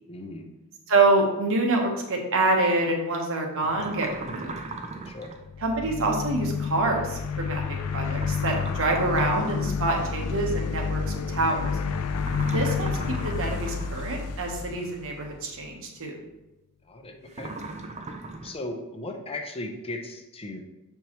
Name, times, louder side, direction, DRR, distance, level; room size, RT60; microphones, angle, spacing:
voice 1, 0.1-0.5 5.0-5.4 12.2-12.4 16.8-17.5 18.4-20.6, left 2 dB, 25° left, 4 dB, 0.7 m, -37 dB
voice 2, 0.9-4.5 5.6-11.8 12.5-16.2, right 2 dB, 65° right, 1 dB, 1.2 m, -26 dB
sound 1, 3.6-5.4 8.1-9.8 12.2-14.2 17.3-18.5, right 3 dB, 30° right, 0.5 m, -38 dB
sound 2, 5.4-15.6, left 5 dB, 80° left, 0.5 m, -30 dB
7.0 x 4.6 x 3.0 m, 1.0 s
head